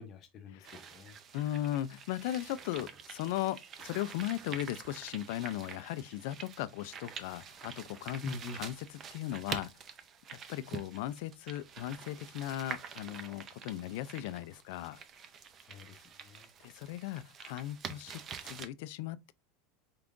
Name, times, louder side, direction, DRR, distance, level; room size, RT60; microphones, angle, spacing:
voice 1, 0.0-1.2 8.2-8.6 15.7-16.5, left 4 dB, 35° left, 0.8 m, -44 dB
sound 1, 0.6-18.7, right 7 dB, 30° right, 0.5 m, -47 dB
voice 2, 1.3-8.2 8.5-8.7 9.1-9.7 10.5-15.0 16.6-19.3, left 13 dB, 65° left, 0.4 m, -37 dB
4.7 x 3.6 x 2.5 m
supercardioid pair, 155°, 0 cm